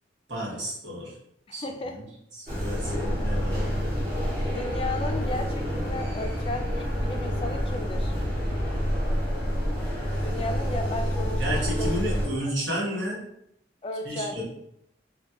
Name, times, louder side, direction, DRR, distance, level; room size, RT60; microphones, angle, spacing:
voice 1, 0.3-1.1 1.5-1.6 2.0-2.1 2.4-3.8 11.4-13.2 14.0-14.4, equal, 85° right, -4 dB, 1.0 m, -32 dB
voice 2, 1.5-2.0 2.6-3.1 4.5-8.1 10.2-11.4 11.8-11.9 13.8-14.4, left 2 dB, 30° left, 4 dB, 0.3 m, -34 dB
sound 1, 2.5-12.3, equal, 50° right, 1.3 m, -28 dB
4.0 x 2.2 x 2.2 m, 0.75 s
head